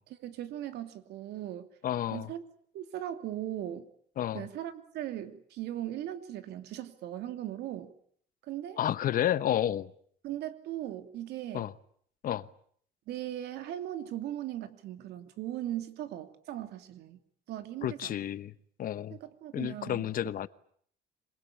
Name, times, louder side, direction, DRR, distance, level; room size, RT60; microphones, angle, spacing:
voice 1, 0.1-1.7 2.1-2.4 2.7-3.9 4.3-7.9 8.5-8.8 10.2-11.7 13.1-17.2 17.5-18.2 19.1-20.1, right 12 dB, 80° right, 2.9 m, -38 dB
voice 2, 1.8-2.3 4.2-4.4 8.8-9.9 11.5-11.7 12.2-12.5 17.8-18.5 18.8-19.2 19.5-20.5, left 11 dB, 55° left, 1.1 m, -30 dB
26.5 x 21.5 x 8.7 m
cardioid pair, 110°, 17 cm